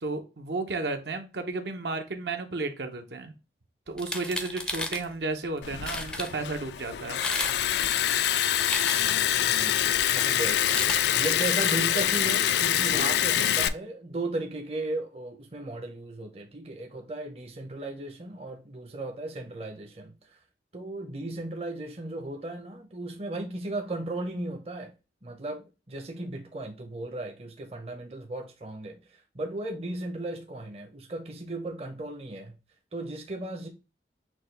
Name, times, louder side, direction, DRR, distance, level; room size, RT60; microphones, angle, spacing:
voice 1, 0.0-3.3 3.9-7.2, right 3 dB, 75° right, 0.8 m, -33 dB
sound 1, 3.9-5.0 5.6-5.7 5.8-6.3 7.0-7.6 7.9-9.3 10.5-11.0, left 1 dB, 5° left, 0.4 m, -34 dB
Liquid, 5.6-13.7, left 11 dB, 70° left, 0.3 m, -25 dB
voice 2, 9.3-9.8 10.1-10.6 11.2-20.4 20.7-24.9 25.2-32.5 32.9-33.7, right 2 dB, 35° right, 0.6 m, -36 dB
6.0 x 2.3 x 3.2 m
head